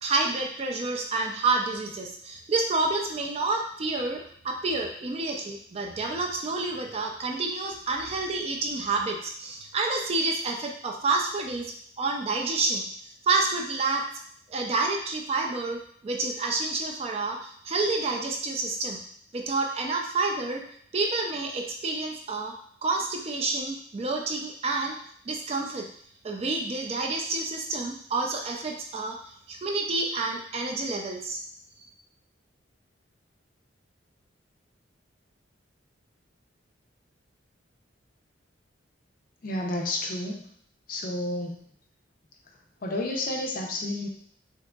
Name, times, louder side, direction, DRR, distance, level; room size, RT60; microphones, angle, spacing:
voice 1, 0.0-11.7 12.0-12.9 13.2-14.0 14.5-19.0 19.3-20.6 20.9-22.5 22.8-25.0 25.3-25.9 26.2-31.4, right 3 dB, 30° right, 2 dB, 0.3 m, -29 dB
voice 2, 39.4-40.4 40.9-41.6 42.8-44.1, left 1 dB, 45° left, 1 dB, 0.5 m, -30 dB
3.6 x 2.8 x 2.2 m, 0.62 s
head